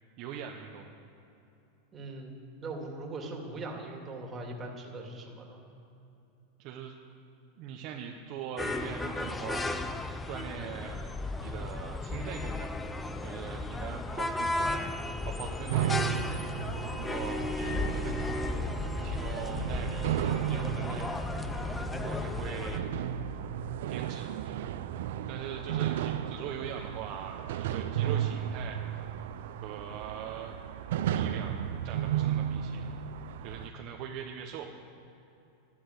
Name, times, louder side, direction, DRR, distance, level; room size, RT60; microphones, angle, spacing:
voice 1, 0.2-0.9 6.6-7.0 7.6-9.9 10.3-11.1 11.4-12.7 13.2-14.9 15.2-16.1 17.0-18.4 19.0-20.2 20.5-21.2 22.0-22.8 23.9-24.3 25.3-28.8 29.6-30.5 31.1-31.6 31.8-32.8 33.4-34.7, right 8 dB, 50° right, 1 dB, 1.1 m, -41 dB
voice 2, 1.9-2.4 2.6-5.6 22.0-22.3, right 2 dB, 25° right, 1 dB, 2.4 m, -40 dB
sound 1, 8.6-22.8, left 2 dB, 10° left, 0.7 m, -35 dB
sound 2, 15.7-33.7, right 10 dB, 75° right, 0.6 m, -34 dB
sound 3, 17.8-23.4, left 2 dB, 40° left, 4.3 m, -46 dB
12.0 x 12.0 x 8.1 m, 2.8 s
supercardioid pair, 140°, 0 cm